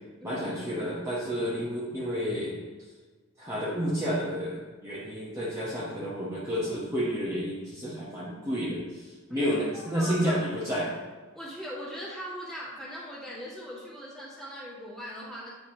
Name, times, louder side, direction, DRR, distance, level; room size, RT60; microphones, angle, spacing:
voice 1, 0.2-2.6 3.4-10.9, equal, 15° right, -8 dB, 1.0 m, -30 dB
voice 2, 9.3-10.4 11.3-15.5, equal, ahead, -7 dB, 1.8 m, -40 dB
8.7 x 4.6 x 2.8 m, 1.3 s
head